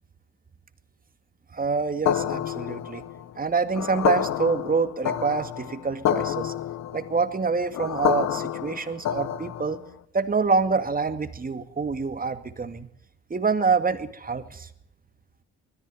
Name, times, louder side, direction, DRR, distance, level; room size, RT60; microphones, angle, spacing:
voice 1, 1.5-3.0 3.4-6.5 6.9-9.8 10.1-12.9 13.3-14.7, right 4 dB, 30° right, 9 dB, 2.2 m, -26 dB
sound 1, 2.1-9.9, left 10 dB, 60° left, 1.3 m, -28 dB
20.5 x 14.5 x 9.3 m, 0.72 s
hypercardioid pair, 55°, 30 cm